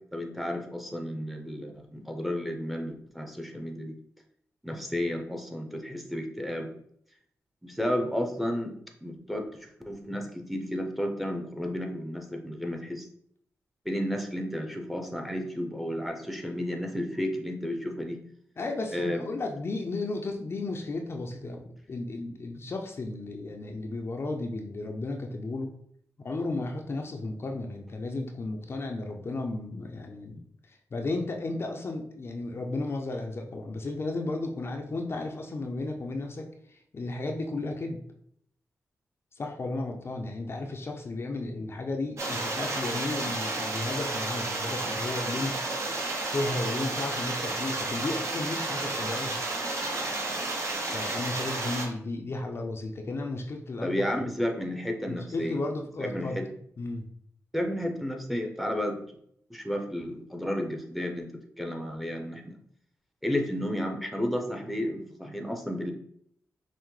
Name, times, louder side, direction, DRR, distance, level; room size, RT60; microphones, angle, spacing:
voice 1, 0.1-4.0 4.6-6.7 7.6-8.7 9.0-13.1 13.8-18.2 18.9-19.3 53.8-55.6 56.0-56.5 57.5-59.0 59.5-62.6 63.2-65.9, left 1 dB, ahead, 3 dB, 0.7 m, -32 dB
voice 2, 18.6-25.7 26.2-38.0 39.4-45.6 46.2-49.4 50.9-54.1 55.1-56.4 56.8-57.1, left 2 dB, 45° left, 3 dB, 0.5 m, -34 dB
sound 1, 42.2-51.9, right 2 dB, 60° right, 0.9 m, -32 dB
5.6 x 2.1 x 3.1 m, 0.69 s
cardioid pair, 85°, 6 cm